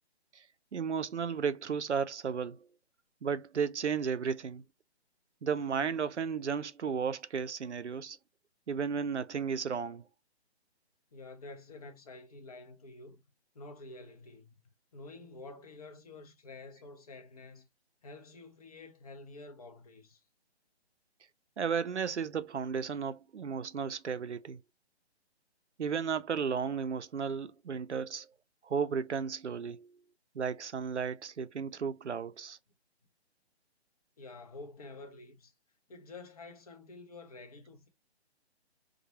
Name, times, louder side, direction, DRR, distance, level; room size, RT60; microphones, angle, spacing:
voice 1, 0.7-2.7 3.2-4.6 5.4-8.2 8.7-10.0 21.6-24.6 25.8-28.3 28.6-29.9 30.3-32.6, right 6 dB, 90° right, 0.5 m, -34 dB
voice 2, 11.1-13.2 13.5-14.6 14.9-17.7 18.0-20.2 34.2-35.5 35.9-37.9, left 3 dB, 35° left, 0.7 m, -49 dB
2.9 x 2.2 x 2.7 m
figure-of-eight pair, 135°, 34 cm